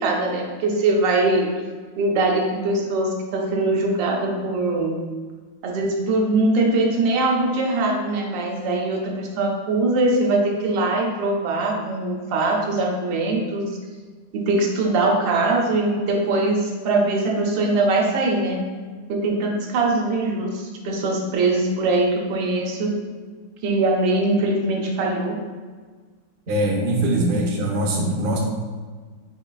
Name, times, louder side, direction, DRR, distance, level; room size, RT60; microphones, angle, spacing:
voice 1, 0.0-1.5 2.0-5.1 5.6-13.8 14.3-18.7 19.1-23.1 23.6-25.5, right 2 dB, 90° right, 1 dB, 1.4 m, -22 dB
voice 2, 26.5-28.4, right 1 dB, 70° right, -1 dB, 0.5 m, -22 dB
3.9 x 3.8 x 2.2 m, 1.4 s
omnidirectional pair, 1.9 m